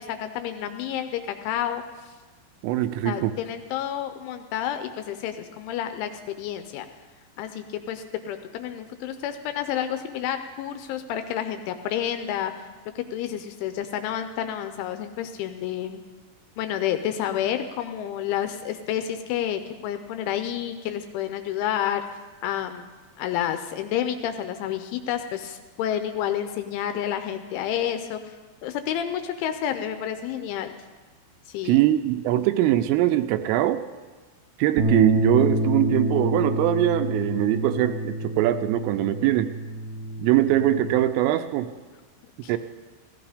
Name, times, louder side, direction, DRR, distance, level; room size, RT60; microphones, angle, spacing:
voice 1, 0.0-2.1 3.1-6.9 7.4-12.7 13.0-16.0 16.6-22.0 22.4-22.9 23.2-28.4 28.6-30.7 31.5-31.8 42.4-42.6, left 10 dB, 80° left, 8 dB, 2.9 m, -30 dB
voice 2, 2.6-3.3 31.6-33.8 34.6-39.5 40.2-41.7 42.5-42.6, right 14 dB, 85° right, 9 dB, 3.1 m, -22 dB
sound 1, 34.8-41.0, right 1 dB, 65° right, 1.8 m, -27 dB
17.0 x 15.0 x 5.0 m, 1.3 s
omnidirectional pair, 5.9 m